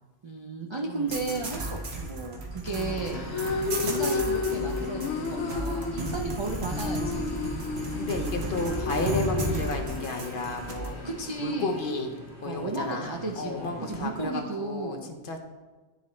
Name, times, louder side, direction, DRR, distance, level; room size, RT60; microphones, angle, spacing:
voice 1, 0.2-3.2 3.8-7.4 8.9-9.2 9.5-9.6 11.0-11.8 12.4-15.1, right 3 dB, 45° right, 0 dB, 0.3 m, -34 dB
sound 1, 1.1-10.9, right 2 dB, 65° right, 1.2 m, -34 dB
voice 2, 2.6-3.1 6.0-6.3 7.9-11.1 11.4-12.1 12.4-15.4, left 3 dB, 55° left, 3 dB, 0.8 m, -33 dB
sound 2, 2.8-14.2, equal, 15° right, 1.5 m, -43 dB
sound 3, 3.1-11.3, left 4 dB, 80° left, 1.0 m, -32 dB
11.0 x 4.0 x 3.1 m, 1.3 s
omnidirectional pair, 1.2 m